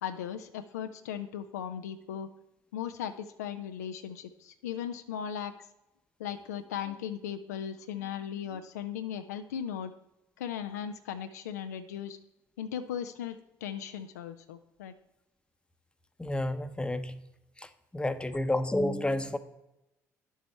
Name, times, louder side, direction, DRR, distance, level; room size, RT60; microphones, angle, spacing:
voice 1, 0.0-2.3 2.7-5.5 6.2-9.9 10.4-12.2 12.6-14.9, left 9 dB, 85° left, 8 dB, 0.4 m, -37 dB
voice 2, 16.2-17.2 17.6-19.4, left 1 dB, 10° left, 11 dB, 0.8 m, -30 dB
9.9 x 7.2 x 4.2 m, 0.93 s
hypercardioid pair, 50°, 9 cm